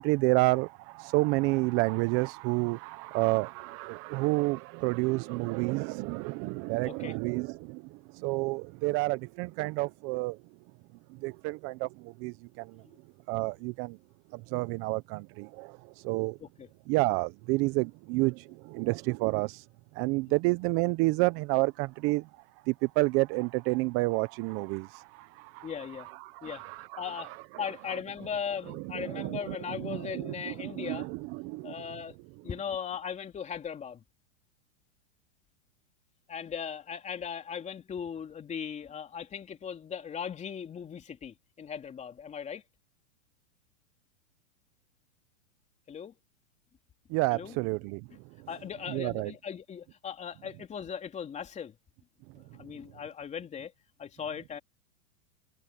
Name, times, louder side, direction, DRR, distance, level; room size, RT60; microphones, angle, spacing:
voice 1, 0.0-7.8 8.1-10.4 11.2-12.8 13.3-14.0 14.3-15.8 16.0-16.4 16.9-19.6 19.9-22.3 22.7-25.7 26.2-27.0 28.9-31.7 47.1-48.0 48.9-49.3, right 24 dB, 35° right, 0.8 m, -30 dB
voice 2, 6.8-7.1 16.4-16.7 20.3-20.4 25.6-26.1 26.4-26.6 27.0-31.1 31.6-32.1 32.4-34.0 36.3-42.6 45.9-46.1 47.3-47.6 48.5-51.8 52.6-53.7 54.0-54.6, left 7 dB, 20° left, 3.2 m, -38 dB
hypercardioid pair, 135°, 38 cm